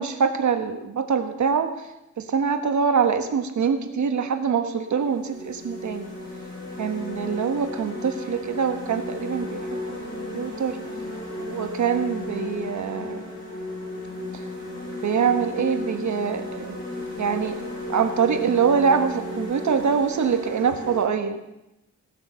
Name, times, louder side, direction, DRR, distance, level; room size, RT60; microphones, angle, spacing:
voice 1, 0.0-1.7 2.2-6.1 6.8-10.8 11.4-13.3 15.0-16.8 17.2-17.6 17.9-21.4, right 6 dB, 65° right, 8 dB, 1.3 m, -24 dB
sound 1, 4.1-4.3 4.9-21.0, left 1 dB, 25° left, 6.7 m, -34 dB
16.5 x 8.3 x 6.8 m, 0.91 s
wide cardioid pair, 160°, 31 cm